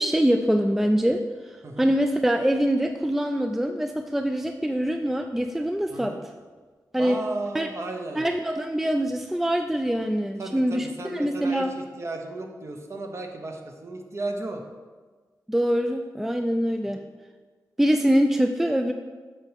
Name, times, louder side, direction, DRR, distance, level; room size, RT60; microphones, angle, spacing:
voice 1, 0.0-6.2 6.9-7.2 7.5-7.7 8.2-11.7 15.5-17.0 17.8-18.9, equal, 5° right, 6 dB, 0.3 m, -24 dB
voice 2, 5.9-6.2 7.0-8.3 10.4-14.6 16.9-17.0, right 2 dB, 45° right, 3 dB, 0.9 m, -34 dB
7.4 x 6.6 x 3.4 m, 1.4 s
wide cardioid pair, 90°, 7 cm